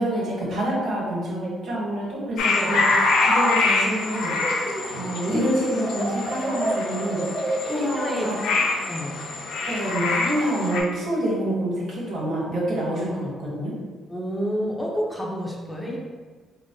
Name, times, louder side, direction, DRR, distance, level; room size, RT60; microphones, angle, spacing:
voice 1, 0.0-2.9 3.2-4.3 4.9-7.2 7.6-8.4 9.6-13.7, right 1 dB, 80° right, -6 dB, 1.4 m, -27 dB
sound 1, 2.4-10.8, left 3 dB, 85° left, 0.5 m, -25 dB
voice 2, 2.6-3.0 7.7-8.5 8.9-9.2 14.1-16.0, equal, 10° left, -2 dB, 0.7 m, -29 dB
sound 2, 4.2-8.3, right 1 dB, 45° right, 1.0 m, -31 dB
4.6 x 2.1 x 2.9 m, 1.4 s
cardioid pair, 90°, 0 cm